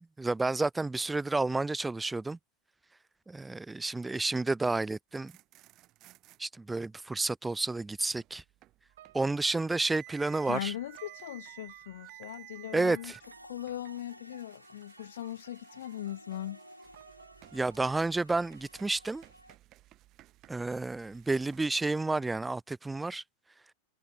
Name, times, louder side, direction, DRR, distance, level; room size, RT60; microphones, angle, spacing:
voice 1, 0.0-2.4 3.3-5.3 6.4-8.4 9.1-10.7 12.7-13.2 17.5-19.2 20.5-23.2, right 3 dB, 10° right, 0.4 m, -30 dB
sound 1, 5.1-6.4 7.6-21.7, right 16 dB, 35° right, 5.1 m, -56 dB
sound 2, 8.9-18.0, right 13 dB, 60° right, 3.6 m, -58 dB
voice 2, 10.4-13.1 13.4-16.6, left 12 dB, 60° left, 0.8 m, -39 dB
sound 3, 13.2-19.6, equal, 90° left, 1.4 m, -55 dB
figure-of-eight pair, 90°, 0 cm